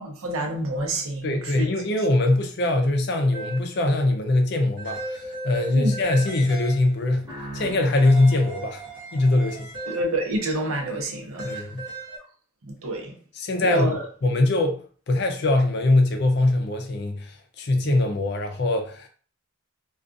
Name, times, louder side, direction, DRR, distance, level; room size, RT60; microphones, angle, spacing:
voice 1, 0.0-1.7 5.7-5.9 9.9-11.7 12.6-13.2 13.6-14.1 17.8-18.0, right 1 dB, 90° right, 0.7 m, -28 dB
voice 2, 1.2-7.3 7.5-8.8 9.1-9.7 11.4-11.8 13.4-14.0 14.2-14.8 15.1-19.1, left 2 dB, 55° left, 0.4 m, -22 dB
sound 1, 3.3-3.8 4.8-7.1 8.0-10.4 11.4-12.2, right 2 dB, 65° right, 1.1 m, -37 dB
sound 2, 7.2-9.9, right 1 dB, 20° right, 1.1 m, -42 dB
2.4 x 2.4 x 2.5 m
head